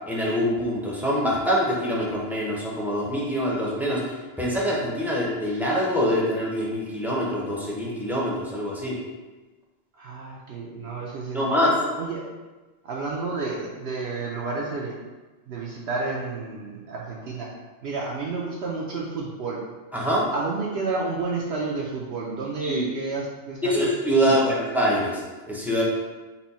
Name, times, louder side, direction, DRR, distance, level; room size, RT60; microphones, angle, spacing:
voice 1, 0.1-9.0 11.3-11.7 19.9-20.2 22.6-22.9 23.6-25.8, equal, ahead, -5 dB, 0.6 m, -25 dB
voice 2, 9.9-12.2 12.8-15.0 15.5-17.5 17.8-19.6 20.3-23.9 24.2-24.6, right 3 dB, 65° right, -4 dB, 0.8 m, -31 dB
4.3 x 2.2 x 4.1 m, 1.2 s
omnidirectional pair, 1.2 m